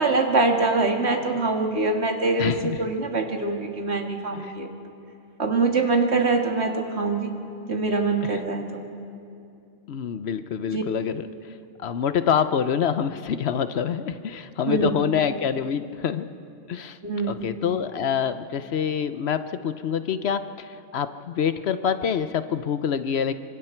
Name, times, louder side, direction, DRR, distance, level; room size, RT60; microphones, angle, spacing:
voice 1, 0.0-4.7 5.4-7.3 7.7-8.8 10.7-10.8 14.6-14.9 17.0-17.5, right 3 dB, 65° right, 3 dB, 2.1 m, -24 dB
voice 2, 2.4-2.8 4.0-4.1 4.4-4.5 8.2-8.3 9.9-11.3 11.8-16.3 16.7-17.0 17.3-23.3, left 7 dB, 65° left, 11 dB, 0.9 m, -26 dB
26.5 x 24.5 x 4.5 m, 2.6 s
omnidirectional pair, 1.2 m